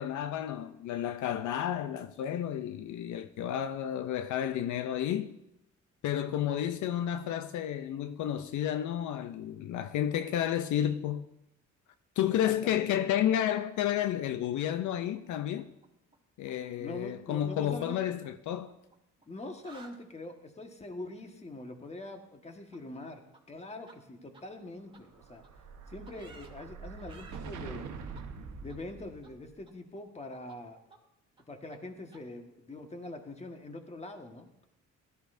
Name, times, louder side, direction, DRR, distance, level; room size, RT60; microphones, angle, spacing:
voice 1, 0.0-5.3 6.0-11.3 12.2-15.7 16.4-18.8, left 10 dB, 75° left, 0.5 m, -31 dB
voice 2, 12.3-12.9 16.8-18.0 19.3-23.2 23.5-25.4 25.9-27.9 28.6-30.8 31.5-34.6, left 2 dB, 20° left, 1.5 m, -43 dB
sound 1, 14.6-16.2 16.4-16.7 17.7-19.3 19.5-20.0 22.7-22.8 23.3-23.4 23.9-24.0 24.3-24.4 24.9-25.0 25.4-25.5 26.1-26.5 27.0-27.4 28.1-28.2 28.7-28.8 29.2-29.3 29.6-30.2 30.5-30.6 30.9-31.0 31.4-31.5 31.7-31.8 32.1-32.2, right 3 dB, 15° right, 1.8 m, -56 dB
Explosion, 24.9-29.5, right 5 dB, 80° right, 1.2 m, -44 dB
16.5 x 12.0 x 2.6 m
cardioid pair, 90°, 30 cm